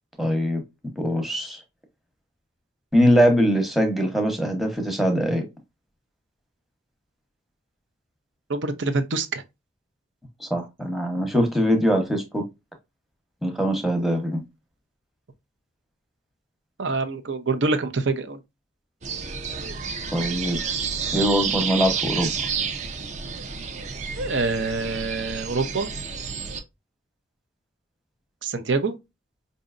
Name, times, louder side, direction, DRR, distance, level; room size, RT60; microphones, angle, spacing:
voice 1, 0.2-0.6 1.0-1.6 2.9-5.4 10.4-12.5 13.4-14.4 20.1-20.6 21.1-22.5, equal, ahead, 0.9 m, -22 dB
voice 2, 8.5-9.4 16.8-18.4 24.1-25.9 28.4-29.0, right 3 dB, 80° right, 0.7 m, -25 dB
sound 1, 19.0-26.6, right 6 dB, 40° right, 0.5 m, -30 dB
5.1 x 2.7 x 2.5 m
head